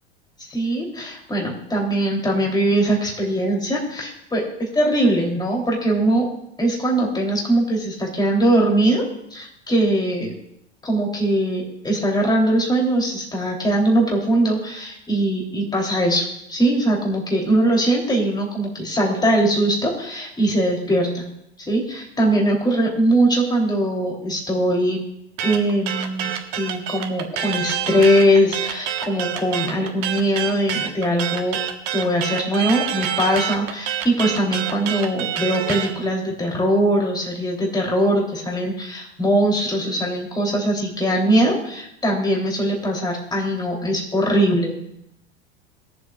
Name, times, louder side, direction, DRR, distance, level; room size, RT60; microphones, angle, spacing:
voice 1, 0.5-6.3 6.6-9.0 9.3-10.3 10.8-21.3 21.7-25.0 25.4-31.6 31.9-44.7, right 1 dB, 10° left, -1 dB, 3.3 m, -21 dB
sound 1, 25.4-35.9, right 9 dB, 50° right, 1.5 m, -27 dB
22.0 x 7.7 x 2.5 m, 0.78 s
hypercardioid pair, 95°, 33 cm